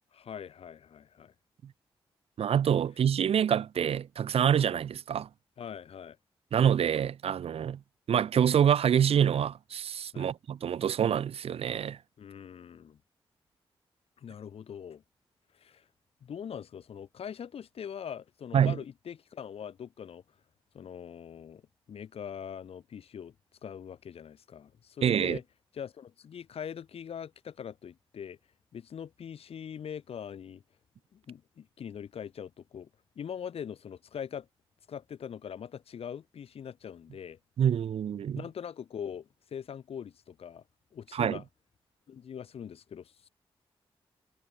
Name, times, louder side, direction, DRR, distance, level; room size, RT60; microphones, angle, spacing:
voice 1, 0.1-1.3 5.6-6.2 10.1-10.3 12.2-13.0 14.2-15.0 15.5-15.9 16.2-20.2 20.7-21.6 21.9-23.3 23.6-25.4 25.7-28.4 28.7-30.6 31.1-32.9 33.2-34.5 34.9-37.4 38.4-40.6 40.9-41.4 42.1-43.3, left 8 dB, 80° left, 2.4 m, -42 dB
voice 2, 2.4-5.3 6.5-7.8 8.1-12.0 18.5-18.7 25.0-25.4 37.6-38.4 41.1-41.4, right 8 dB, 80° right, 1.0 m, -26 dB
cardioid pair, 65°, 10 cm